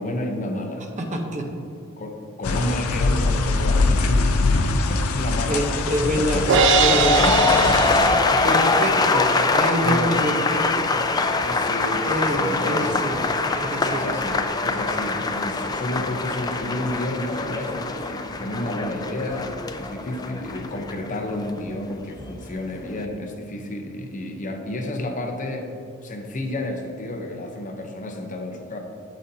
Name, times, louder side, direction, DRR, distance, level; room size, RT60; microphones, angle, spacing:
voice 1, 0.0-0.9 2.0-8.7 9.1-9.2 9.5-10.2 11.4-13.5 13.9-25.7 26.0-28.8, left 1 dB, 35° left, 3 dB, 0.7 m, -31 dB
voice 2, 1.0-1.5 5.5-6.5 6.8-7.4 8.4-11.0 12.0-13.2 13.6-14.0, equal, 35° right, 3 dB, 0.9 m, -26 dB
sound 1, 2.4-8.1, left 3 dB, 80° left, 0.5 m, -23 dB
sound 2, 6.2-22.3 22.6-23.0, left 3 dB, 20° left, 0.4 m, -23 dB
Crash cymbal, 6.5-8.8, right 6 dB, 60° right, 0.4 m, -22 dB
9.1 x 8.0 x 2.7 m, 2.6 s
head